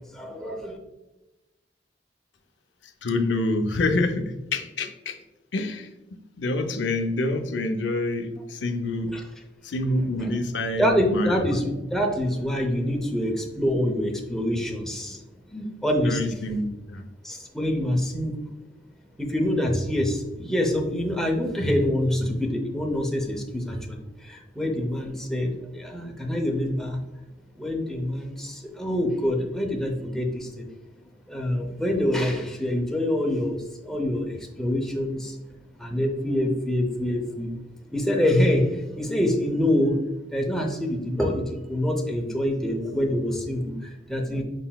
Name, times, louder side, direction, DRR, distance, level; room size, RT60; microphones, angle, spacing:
voice 1, 0.1-0.8 9.1-9.2 10.2-10.3 10.8-15.2 15.5-16.3 17.2-18.3 19.2-27.0 27.6-30.7 31.3-35.4 35.8-37.6 37.8-40.0 40.3-44.4, left 1 dB, 5° left, 1 dB, 0.6 m, -26 dB
voice 2, 2.8-5.2 5.5-9.2 9.6-11.4 16.0-17.1, left 2 dB, 75° left, 6 dB, 0.5 m, -27 dB
5.6 x 3.8 x 2.3 m, 1.0 s
head